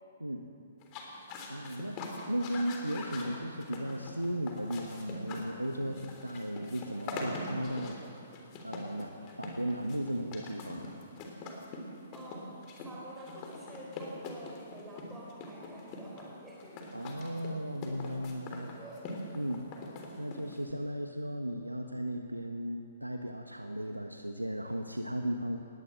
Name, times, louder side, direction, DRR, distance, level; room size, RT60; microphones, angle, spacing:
sound 1, 0.8-20.7, left 2 dB, 30° left, 3.6 m, -43 dB
voice 1, 1.5-8.0 8.6-10.9 16.9-18.7 19.3-19.7 20.2-25.6, equal, 90° right, 4 dB, 1.2 m, -36 dB
voice 2, 12.1-17.0 18.5-19.1, right 1 dB, 10° right, -5 dB, 4.7 m, -49 dB
20.0 x 18.0 x 7.7 m, 2.5 s
figure-of-eight pair, 120°, 0 cm